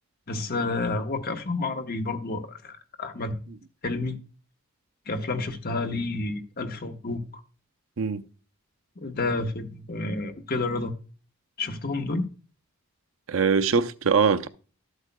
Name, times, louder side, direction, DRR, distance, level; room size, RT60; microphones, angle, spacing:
voice 1, 0.3-3.4 3.8-4.2 5.1-7.4 9.0-11.0 11.6-12.3, left 3 dB, 45° left, 1.1 m, -30 dB
voice 2, 13.3-14.5, right 5 dB, 60° right, 0.6 m, -22 dB
12.5 x 8.1 x 2.2 m
head